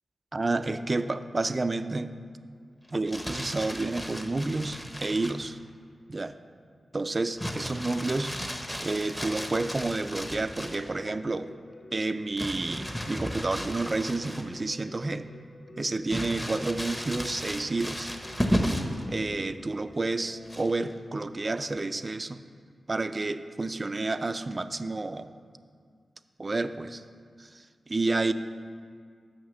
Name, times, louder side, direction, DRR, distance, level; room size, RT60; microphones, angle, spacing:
voice 1, 0.3-2.1 2.9-5.6 6.1-6.4 6.9-8.3 8.8-11.5 11.9-15.3 15.8-18.1 19.1-22.4 22.9-25.3 26.4-27.0 27.4-28.3, right 2 dB, 35° right, 11 dB, 0.3 m, -30 dB
Crumpling crinkling, 2.9-5.5 7.4-10.9 12.4-14.7 15.1-15.2 16.1-19.0 20.5-20.9, equal, 10° left, 0.7 m, -34 dB
Keyboard (musical), 9.4-21.8, left 2 dB, 75° left, 1.3 m, -53 dB
6.4 x 5.7 x 7.0 m, 2.1 s
wide cardioid pair, 95°, 0 cm